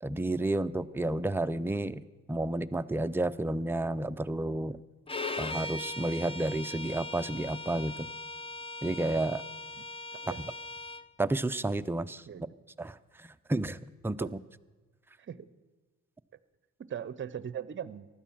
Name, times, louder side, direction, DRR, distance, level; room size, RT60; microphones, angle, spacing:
voice 1, 0.0-2.0 2.3-4.8 5.4-8.1 8.8-9.4 11.2-12.2 12.8-13.8 14.0-14.3, right 2 dB, 10° right, 10 dB, 0.5 m, -31 dB
Bowed string instrument, 5.1-11.1, left 2 dB, 20° left, 0.8 m, -39 dB
voice 2, 10.1-10.4 12.3-12.6 14.2-14.3 15.2-15.5 16.8-18.1, right 9 dB, 40° right, 17 dB, 0.8 m, -40 dB
15.5 x 11.0 x 7.4 m, 1.3 s
cardioid pair, 90°, 30 cm